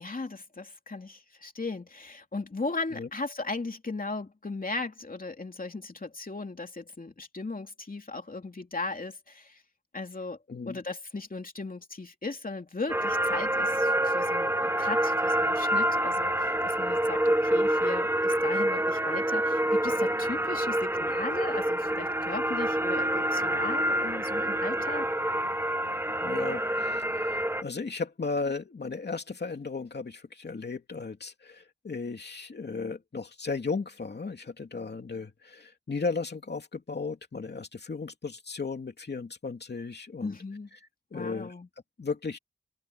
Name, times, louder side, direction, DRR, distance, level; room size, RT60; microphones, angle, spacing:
voice 1, 0.0-9.6 9.9-10.4 10.7-25.1 40.2-40.7 41.1-41.7, left 3 dB, 60° left, 2.9 m, -37 dB
voice 2, 10.5-10.8 26.2-40.4 41.1-41.5 42.0-42.4, left 4 dB, 90° left, 2.7 m, -35 dB
sound 1, 12.9-27.6, right 1 dB, 15° right, 1.3 m, -27 dB
wide cardioid pair, 45°, 17 cm